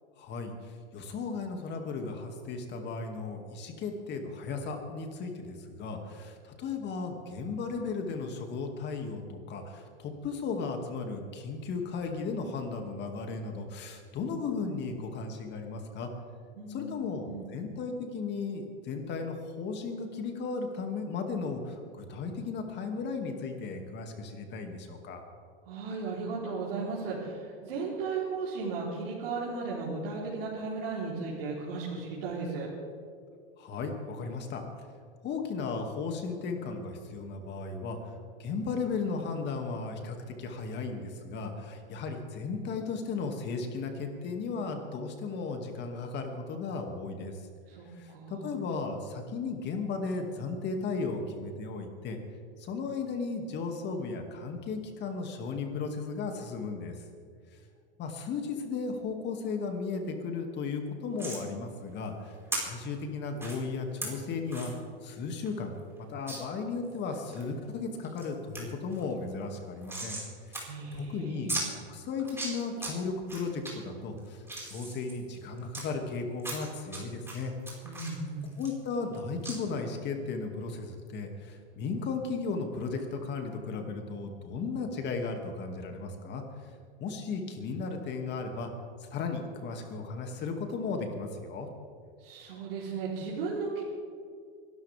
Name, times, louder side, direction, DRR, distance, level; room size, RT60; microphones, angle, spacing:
voice 1, 0.2-16.1 16.7-25.2 33.6-34.6 35.2-38.1 38.4-47.4 47.9-52.2 52.6-56.9 58.0-64.7 65.0-70.2 70.5-77.5 78.6-86.4 87.0-88.7 89.1-91.7, left 4 dB, 35° left, 4 dB, 2.4 m, -35 dB
voice 2, 16.6-17.5 25.7-32.7 47.7-47.9 48.1-48.5 70.7-71.7 77.8-78.6 92.2-93.8, right 4 dB, 75° right, -7 dB, 4.0 m, -35 dB
sound 1, 61.2-61.4 62.5-62.6 63.4-63.6 64.0-64.1 64.5-64.7 65.1-65.2 65.5-65.6 66.3-66.4 66.9-67.4 67.9-68.2 68.5-68.6 68.9-70.3 70.5-70.6 70.9-71.0 71.5-71.6 72.2-72.9 73.3-73.7 74.2-75.8 76.4-77.0 77.3-79.1 79.4-79.6, right 2 dB, 10° right, 4.9 m, -37 dB
24.0 x 13.0 x 3.6 m, 2.2 s
hypercardioid pair, 110°, 29 cm